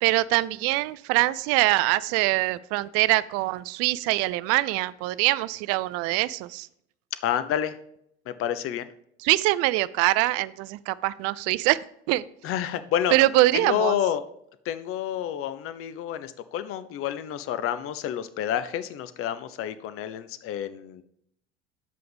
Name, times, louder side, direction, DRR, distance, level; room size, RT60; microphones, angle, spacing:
voice 1, 0.0-6.7 9.2-11.8 12.1-12.2 13.1-14.0, right 18 dB, 45° right, 18 dB, 0.4 m, -23 dB
voice 2, 7.2-7.8 8.3-8.9 12.4-13.2 13.5-14.2 14.6-21.0, left 10 dB, 40° left, 13 dB, 0.7 m, -29 dB
9.4 x 7.6 x 3.5 m, 0.72 s
figure-of-eight pair, 70°, 33 cm